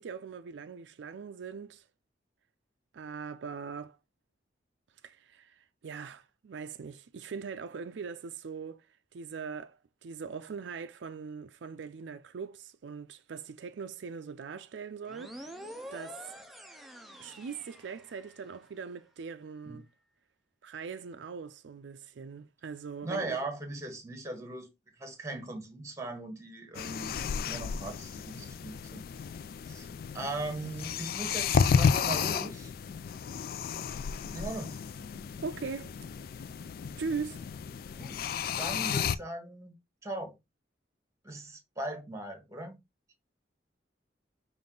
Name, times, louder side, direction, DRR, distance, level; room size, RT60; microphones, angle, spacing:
voice 1, 0.0-1.8 2.9-4.0 5.0-8.9 9.1-15.6 15.9-16.3 17.2-19.8 20.6-23.4 35.4-35.9 37.0-37.5, right 5 dB, 80° right, 0.4 m, -41 dB
sound 1, 15.1-18.6, right 1 dB, ahead, 0.5 m, -47 dB
voice 2, 23.0-24.7 25.0-29.0 29.7-29.9 30.1-32.7 34.3-34.8 38.0-38.3 38.6-39.8 40.0-40.4 41.2-42.8, right 2 dB, 15° right, 1.1 m, -39 dB
sound 2, 26.7-39.2, left 6 dB, 50° left, 0.3 m, -32 dB
5.4 x 2.5 x 3.7 m
head